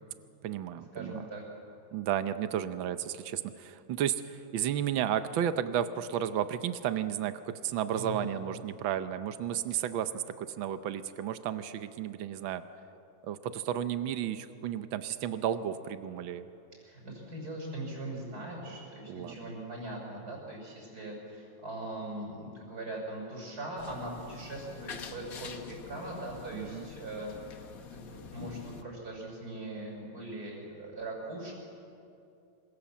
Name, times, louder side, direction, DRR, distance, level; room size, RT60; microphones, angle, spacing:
voice 1, 0.4-1.3 1.9-12.6 13.2-16.5 19.1-19.5 26.5-26.9, right 10 dB, 80° right, 11 dB, 1.7 m, -33 dB
voice 2, 0.9-1.4 7.9-8.3 16.8-31.5, right 1 dB, 50° right, -3 dB, 5.9 m, -41 dB
sound 1, 23.8-28.8, left 6 dB, 50° left, 1.5 m, -46 dB
26.5 x 25.5 x 7.2 m, 2.7 s
omnidirectional pair, 2.1 m